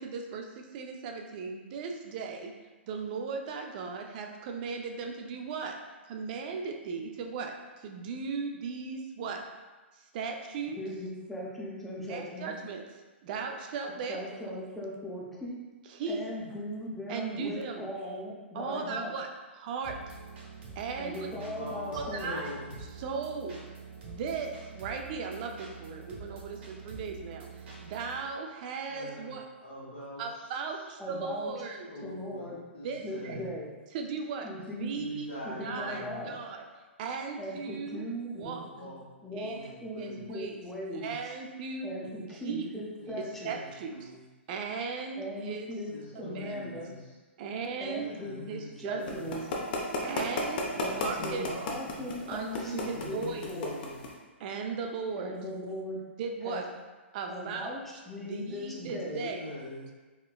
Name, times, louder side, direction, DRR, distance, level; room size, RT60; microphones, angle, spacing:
voice 1, 0.0-2.5 2.9-5.8 6.1-9.4 9.9-10.8 12.1-12.8 13.2-14.6 15.9-16.2 17.1-17.9 18.5-19.3 19.5-20.2 20.8-21.3 22.0-22.5 23.0-23.6 24.0-29.5 30.2-31.9 32.8-33.4 33.9-35.3 35.6-36.6 37.0-38.1 38.4-38.6 39.3-40.6 40.9-41.9 42.4-42.7 43.2-44.1 44.5-45.7 46.3-46.6 47.4-48.1 48.5-49.3 50.0-51.5 52.3-53.5 54.4-55.4 56.2-56.7 57.1-57.7 58.2-59.4, right 5 dB, 45° right, 3 dB, 0.4 m, -37 dB
voice 2, 10.8-12.5 14.1-15.6 16.1-19.1 21.0-22.3 31.0-31.5 32.0-32.6 33.0-33.7 34.4-35.0 35.4-36.4 37.4-38.9 39.2-41.2 41.8-43.5 45.2-45.9 46.2-46.9 47.8-48.4 48.8-49.4 50.8-53.7 55.1-56.0 56.4-56.6 57.3-59.4, left 1 dB, 5° left, -5 dB, 0.6 m, -39 dB
sound 1, 19.8-28.2, right 5 dB, 60° right, 1.0 m, -46 dB
voice 3, 21.2-22.7 28.9-29.3 29.6-30.2 31.9-33.5 34.9-36.2 38.4-39.0 39.3-40.4 42.5-44.2 45.9-46.9 48.0-49.2 50.7-52.0 52.7-53.9 58.8-59.8, left 1 dB, 90° left, -12 dB, 1.2 m, -43 dB
sound 2, 49.1-54.1, left 2 dB, 50° left, 0.6 m, -33 dB
4.2 x 2.1 x 2.2 m, 1.2 s
hypercardioid pair, 130°, 7 cm